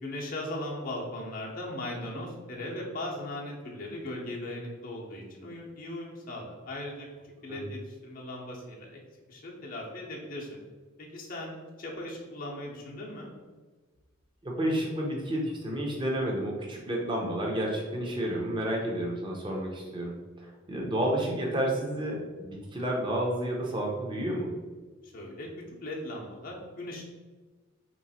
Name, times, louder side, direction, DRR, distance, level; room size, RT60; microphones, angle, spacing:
voice 1, 0.0-7.1 7.4-9.0 9.3-10.6 11.0-13.3 25.0-25.5 25.8-27.0, left 1 dB, 40° left, -2 dB, 0.7 m, -38 dB
voice 2, 14.4-24.6, right 1 dB, 25° right, -1 dB, 0.7 m, -31 dB
3.1 x 3.0 x 4.2 m, 1.3 s
head